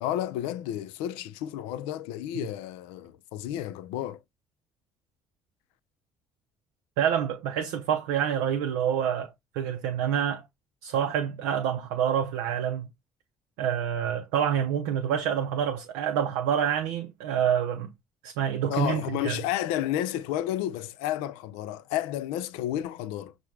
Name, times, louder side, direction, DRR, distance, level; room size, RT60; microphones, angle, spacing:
voice 1, 0.0-4.2 18.7-23.3, left 12 dB, 75° left, 0.4 m, -31 dB
voice 2, 7.0-10.4 10.8-12.9 13.6-17.9 18.2-19.4, right 9 dB, 80° right, 0.4 m, -27 dB
5.6 x 2.1 x 3.2 m
hypercardioid pair, 50°, 10 cm